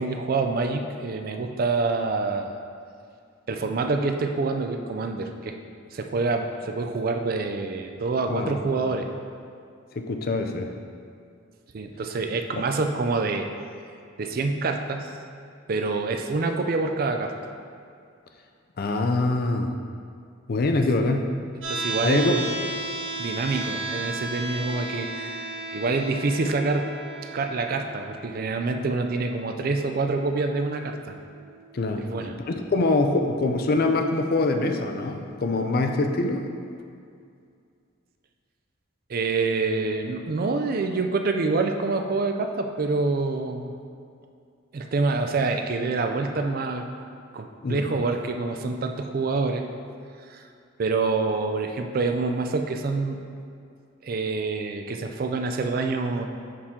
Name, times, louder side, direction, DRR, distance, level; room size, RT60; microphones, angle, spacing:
voice 1, 0.0-2.6 3.5-5.5 5.9-9.1 11.7-13.5 14.2-15.1 15.7-17.3 21.7-22.5 23.2-26.9 27.3-31.2 32.1-32.4 39.1-43.7 44.7-46.8 47.3-49.7 50.3-50.4 50.8-53.2 54.0-56.3, right 3 dB, 45° right, 5 dB, 0.4 m, -26 dB
voice 2, 8.3-8.6 9.9-10.7 18.8-19.7 20.5-21.3 21.8-22.4 31.7-32.0 32.5-36.5 47.6-47.9, left 2 dB, 45° left, 4 dB, 0.4 m, -24 dB
sound 1, 21.6-33.6, right 2 dB, 65° right, 1.2 m, -36 dB
6.6 x 4.3 x 3.6 m, 2.3 s
head